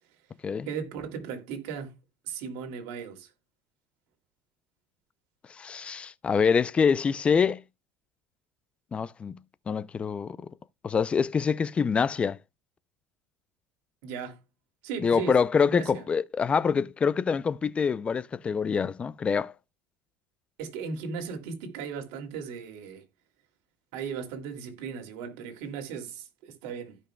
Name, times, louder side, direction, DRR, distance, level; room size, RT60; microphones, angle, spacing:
voice 1, 0.7-1.9 2.2-3.3 14.0-14.4 14.8-15.3 15.6-16.0 20.6-23.0 23.9-27.0, right 6 dB, 75° right, 2.5 m, -36 dB
voice 2, 5.5-7.6 8.9-9.4 9.7-10.5 10.8-12.4 15.0-19.5, left 6 dB, 25° left, 0.4 m, -25 dB
16.0 x 5.3 x 2.2 m
supercardioid pair, 120°, 5 cm